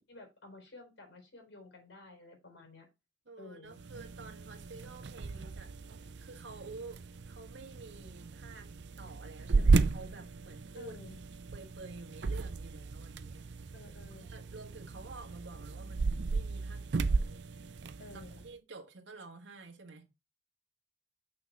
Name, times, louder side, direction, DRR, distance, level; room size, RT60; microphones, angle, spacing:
voice 1, 0.1-2.9 3.4-3.8 10.7-11.2 13.7-14.3 18.0-18.4, left 2 dB, 80° left, 4.2 m, -52 dB
voice 2, 3.3-5.7 6.2-8.7 9.0-11.0 11.5-13.7 14.1-17.8 18.1-20.1, right 3 dB, 90° right, 1.5 m, -50 dB
sound 1, 3.7-18.5, right 4 dB, 70° right, 0.5 m, -34 dB
6.4 x 5.9 x 4.7 m
head